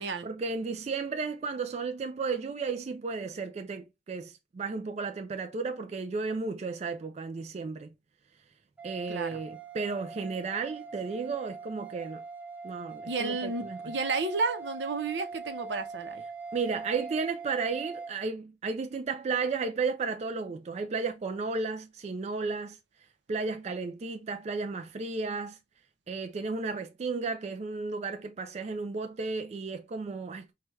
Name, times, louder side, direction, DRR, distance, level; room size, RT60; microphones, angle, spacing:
voice 1, 0.0-7.9 8.8-12.2 12.6-13.8 16.5-22.8 23.3-25.6 26.1-30.5, right 4 dB, 40° right, 0.3 m, -33 dB
sound 1, 8.8-18.1, right 4 dB, 10° right, 0.7 m, -42 dB
voice 2, 9.1-9.4 13.1-16.2, right 3 dB, 85° right, 0.7 m, -32 dB
4.8 x 2.2 x 3.0 m
head